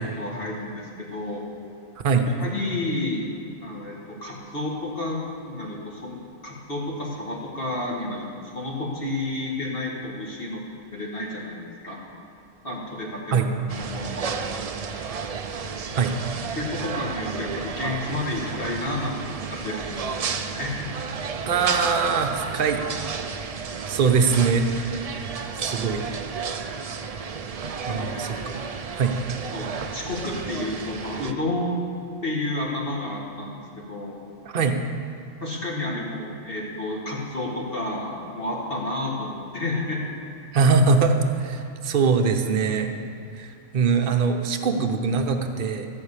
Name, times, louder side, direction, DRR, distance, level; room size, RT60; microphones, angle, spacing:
voice 1, 0.0-1.4 2.4-3.2 3.6-8.3 8.5-10.6 10.9-12.0 12.6-14.4 16.3-20.9 24.8-24.9 27.9-28.5 29.5-31.8 32.2-34.2 35.4-40.1, left 2 dB, 45° left, -3 dB, 2.0 m, -31 dB
sound 1, 13.7-31.3, right 5 dB, 65° right, 0.3 m, -32 dB
voice 2, 21.5-22.8 23.9-24.7 25.5-26.0 27.9-28.6 28.9-29.2 34.5-34.8 40.5-42.9 43.4-45.9, right 5 dB, 45° right, 5 dB, 0.9 m, -22 dB
14.5 x 5.5 x 8.2 m, 2.6 s
omnidirectional pair, 1.4 m